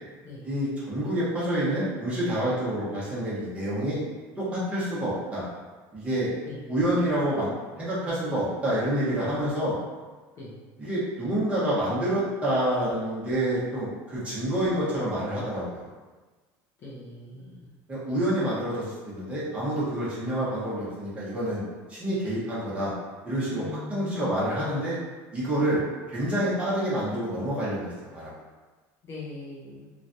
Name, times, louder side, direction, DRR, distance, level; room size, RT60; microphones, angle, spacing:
voice 1, 0.4-4.0 4.4-5.5 5.9-6.3 6.7-9.7 10.8-15.9 17.9-21.6 21.9-22.9 23.2-23.6 23.9-24.9 25.3-25.8 26.1-28.3, right 1 dB, 15° right, -9 dB, 0.9 m, -28 dB
voice 2, 16.8-17.7 23.5-24.5 25.6-25.7 29.0-29.9, left 3 dB, 35° left, -6 dB, 0.6 m, -40 dB
3.1 x 2.3 x 2.6 m, 1.3 s
cardioid pair, 155°, 8 cm